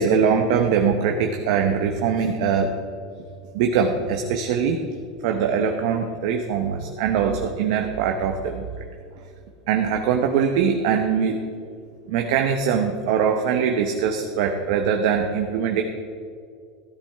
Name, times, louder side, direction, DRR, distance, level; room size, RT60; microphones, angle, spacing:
voice 1, 0.0-2.7 3.5-4.8 5.2-8.7 9.7-11.5 12.1-15.8, right 6 dB, 65° right, 4 dB, 0.9 m, -22 dB
13.5 x 11.5 x 3.5 m, 2.3 s
supercardioid pair, 140°, 3 cm